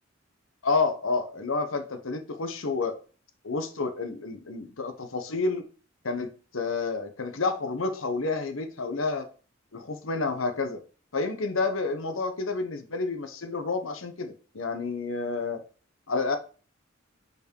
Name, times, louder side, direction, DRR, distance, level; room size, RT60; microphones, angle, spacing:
voice 1, 0.6-3.0 3.4-5.6 6.0-6.3 6.5-9.3 9.7-10.8 11.1-15.6 16.1-16.4, left 3 dB, 90° left, 1.0 m, -29 dB
5.4 x 4.7 x 4.6 m
head